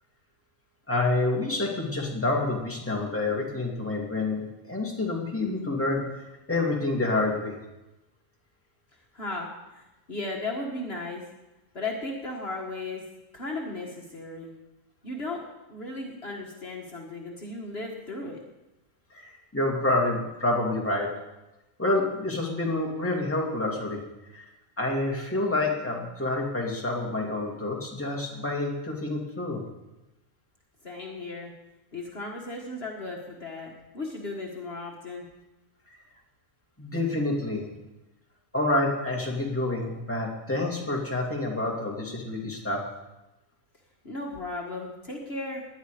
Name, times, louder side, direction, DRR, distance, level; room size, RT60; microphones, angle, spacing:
voice 1, 0.9-6.0 6.5-7.5 19.1-21.1 21.8-24.0 24.3-24.5 24.8-29.6 35.9-36.0 36.8-37.6 38.5-42.8, left 2 dB, 10° left, -2 dB, 2.4 m, -28 dB
voice 2, 9.1-11.2 11.7-13.0 13.3-14.5 15.0-15.4 15.7-18.4 30.8-31.5 31.9-35.3 44.0-45.6, left 2 dB, 50° left, -1 dB, 1.8 m, -36 dB
18.5 x 11.0 x 5.0 m, 1.0 s
omnidirectional pair, 1.4 m